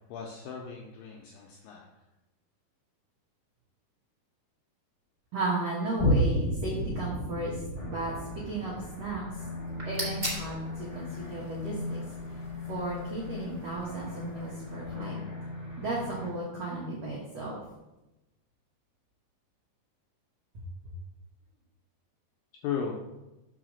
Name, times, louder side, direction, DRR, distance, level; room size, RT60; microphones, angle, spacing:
voice 1, 0.1-1.9 22.6-23.0, left 7 dB, 85° left, -1 dB, 2.0 m, -36 dB
voice 2, 5.3-7.6 7.9-9.2 9.8-12.0 12.7-15.2 15.8-17.6, right 2 dB, 80° right, -4 dB, 1.5 m, -34 dB
Boom, 6.0-12.9 13.4-13.5, equal, 60° left, 1.9 m, -33 dB
sound 1, 7.7-16.3, left 3 dB, 15° right, 1.9 m, -40 dB
sound 2, 9.5-14.7, equal, 40° right, 0.5 m, -42 dB
4.9 x 4.8 x 6.2 m, 0.99 s
omnidirectional pair, 4.7 m